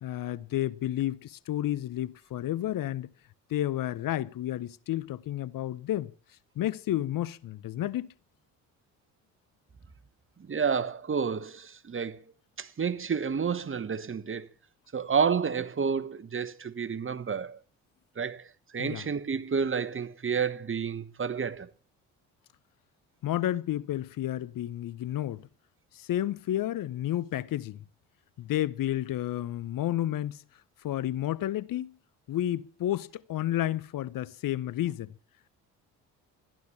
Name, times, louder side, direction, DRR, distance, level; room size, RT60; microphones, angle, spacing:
voice 1, 0.0-3.1 3.5-6.1 6.6-8.1 18.8-19.0 23.2-25.5 25.9-27.8 28.4-30.4 30.8-31.9 32.3-35.1, left 13 dB, 55° left, 0.8 m, -31 dB
voice 2, 10.4-12.2 12.6-14.5 14.9-17.6 18.2-21.7, right 6 dB, 30° right, 1.2 m, -30 dB
14.0 x 11.5 x 7.1 m
hypercardioid pair, 55°, 40 cm